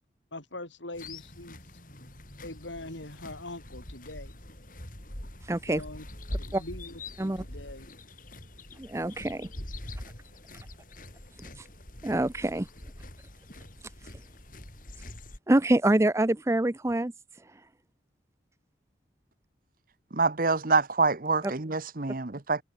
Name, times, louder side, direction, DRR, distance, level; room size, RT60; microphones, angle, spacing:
voice 1, 0.3-1.6 2.4-4.4 5.7-6.1 6.4-7.9, left 2 dB, 90° left, 6.1 m, -42 dB
sound 1, 0.9-15.4, left 1 dB, 45° left, 6.9 m, -44 dB
voice 2, 5.5-5.8 6.5-6.6 7.2-7.4 8.8-9.5 11.6-11.7 12.0-12.7 15.5-17.1, right 1 dB, 15° right, 0.5 m, -25 dB
voice 3, 20.1-22.6, right 4 dB, 50° right, 1.1 m, -26 dB
head